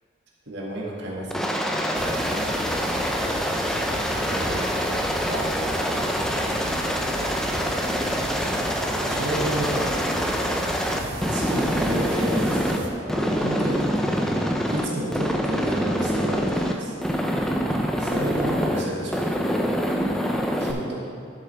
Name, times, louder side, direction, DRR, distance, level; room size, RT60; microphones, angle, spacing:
voice 1, 0.5-1.6 4.3-4.7 5.3-5.5 9.1-10.1 11.3-14.4 14.7-17.0 18.0-19.2 20.6-21.1, right 1 dB, 65° right, -4 dB, 2.0 m, -31 dB
Aircraft, 1.3-12.8 13.1-14.9 15.1-16.7 17.0-18.8 19.1-20.7, equal, 5° left, 0.5 m, -25 dB
sound 1, 1.9-12.9, right 1 dB, 80° right, 1.0 m, -34 dB
11.5 x 7.2 x 3.5 m, 2.3 s
head